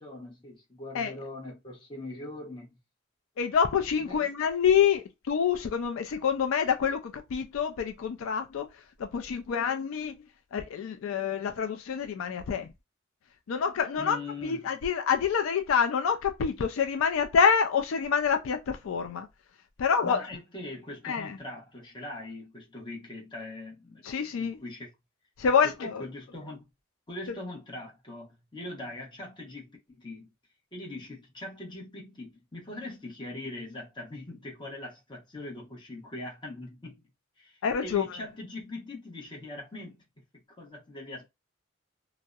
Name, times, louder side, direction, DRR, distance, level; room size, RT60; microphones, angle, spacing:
voice 1, 0.0-2.7 4.0-4.3 14.0-14.7 20.0-24.9 25.6-26.7 27.1-30.3 30.7-37.0 37.4-40.0 40.3-41.3, left 2 dB, 25° left, 0.8 m, -41 dB
voice 2, 3.4-8.7 9.0-10.2 10.5-12.7 13.5-14.2 14.4-19.3 19.8-20.3 21.0-21.4 24.0-24.6 25.4-26.0 37.6-38.0, left 7 dB, 75° left, 0.4 m, -27 dB
2.6 x 2.0 x 2.3 m
head